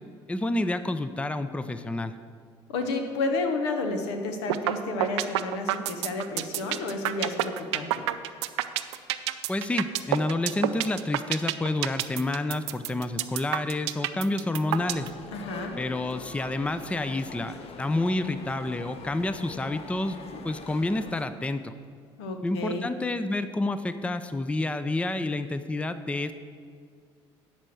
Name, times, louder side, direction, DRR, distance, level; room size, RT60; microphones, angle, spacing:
voice 1, 0.3-2.1 9.5-15.1 15.8-20.2 20.4-21.7 22.4-26.3, left 2 dB, 10° left, 11 dB, 0.5 m, -29 dB
voice 2, 2.7-8.0 15.3-15.7 22.2-22.9, left 3 dB, 80° left, 5 dB, 1.0 m, -31 dB
sound 1, 4.5-4.7 5.0-15.1, right 16 dB, 80° right, 0.4 m, -27 dB
sound 2, 14.7-21.2, left 4 dB, 45° left, 1.0 m, -43 dB
10.0 x 4.5 x 7.8 m, 2.1 s
hypercardioid pair, 60°, 14 cm